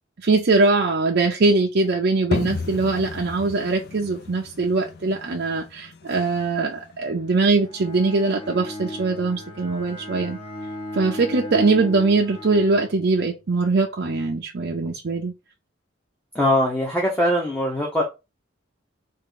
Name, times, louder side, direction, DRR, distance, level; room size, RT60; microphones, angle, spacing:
voice 1, 0.2-10.4 10.9-15.3, right 3 dB, 55° right, 0.5 m, -22 dB
sound 1, 2.3-7.8, left 4 dB, 55° left, 0.5 m, -34 dB
Bowed string instrument, 7.6-13.4, left 1 dB, 30° left, 1.0 m, -36 dB
voice 2, 16.3-18.0, left 1 dB, 5° left, 0.8 m, -21 dB
3.6 x 2.6 x 3.7 m
head